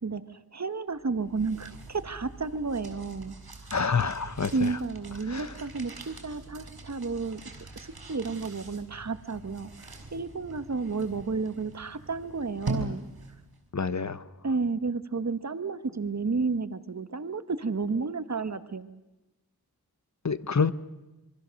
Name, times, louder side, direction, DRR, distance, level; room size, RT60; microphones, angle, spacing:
voice 1, 0.0-3.3 4.4-7.4 7.8-13.0 14.4-19.0, right 4 dB, 45° right, 12 dB, 1.2 m, -32 dB
sound 1, 1.0-13.6, right 2 dB, 90° right, 3.9 m, -42 dB
voice 2, 3.7-4.5 5.3-5.5 13.7-14.2 20.2-20.7, left 5 dB, 50° left, 14 dB, 0.9 m, -27 dB
26.5 x 23.5 x 6.5 m, 1.0 s
wide cardioid pair, 70°, 37 cm